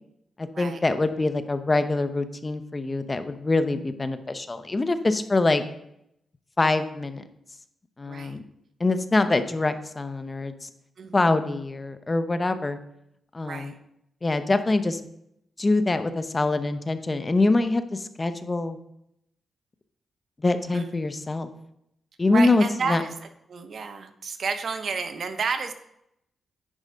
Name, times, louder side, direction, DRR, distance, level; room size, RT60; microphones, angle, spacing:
voice 1, 0.4-5.6 6.6-7.2 8.0-8.4 8.8-10.7 11.1-12.8 13.3-13.7 14.2-15.0 15.6-18.8 20.4-21.5 22.2-23.0, left 2 dB, 30° left, 10 dB, 0.7 m, -24 dB
voice 2, 8.1-8.4 11.0-11.4 13.5-13.7 20.7-21.0 22.3-23.1 23.5-25.7, right 5 dB, 60° right, 9 dB, 0.9 m, -31 dB
9.9 x 4.8 x 5.5 m, 0.79 s
cardioid pair, 85°, 0 cm